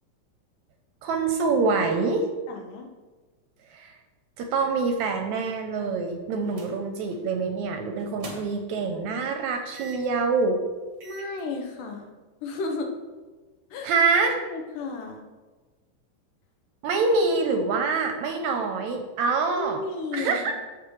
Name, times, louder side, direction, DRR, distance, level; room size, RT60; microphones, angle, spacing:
voice 1, 1.0-2.3 3.7-4.0 4.4-10.6 13.8-14.4 16.8-19.8 20.1-20.5, right 4 dB, 75° right, 5 dB, 1.8 m, -25 dB
voice 2, 2.5-2.9 11.0-12.1 12.4-12.9 13.7-13.9 14.2-15.3 19.6-20.5, left 3 dB, 80° left, 3 dB, 2.6 m, -33 dB
sound 1, 6.5-6.8 7.1-7.3 8.0-8.8 9.7-10.2 10.6-10.7 11.0-11.4, right 3 dB, 50° right, 1.2 m, -43 dB
14.5 x 5.0 x 3.1 m, 1.3 s
omnidirectional pair, 3.7 m